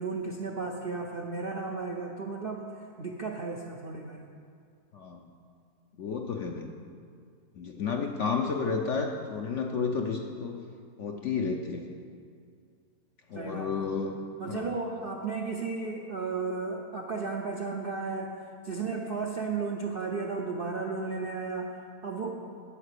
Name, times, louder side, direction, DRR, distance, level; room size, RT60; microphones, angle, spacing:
voice 1, 0.0-4.3 13.3-13.9 14.4-22.4, right 4 dB, 60° right, 1 dB, 0.6 m, -34 dB
voice 2, 6.0-6.7 7.6-10.7 11.0-11.9 13.3-14.1 14.5-14.7, left 5 dB, 60° left, 3 dB, 0.8 m, -31 dB
10.5 x 7.9 x 6.6 m, 2.3 s
omnidirectional pair, 1.8 m